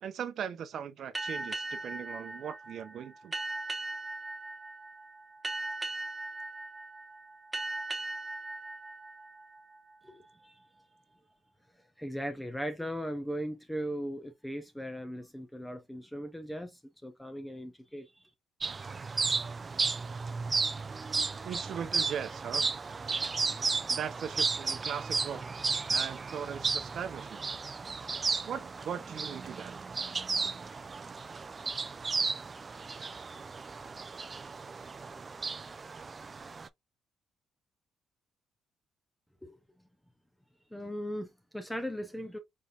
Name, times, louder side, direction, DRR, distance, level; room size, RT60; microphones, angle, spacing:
voice 1, 0.0-3.3 21.4-22.7 23.9-25.4 25.9-27.4 28.4-29.7, right 8 dB, 65° right, 0.6 m, -39 dB
sound 1, 1.2-10.3, right 2 dB, 15° right, 0.9 m, -39 dB
voice 2, 10.0-10.6 12.0-18.1 39.4-39.6 40.7-42.4, equal, 5° left, 0.7 m, -38 dB
sound 2, 18.6-36.7, right 4 dB, 35° right, 0.3 m, -34 dB
4.2 x 3.4 x 2.4 m
cardioid pair, 90°, 0 cm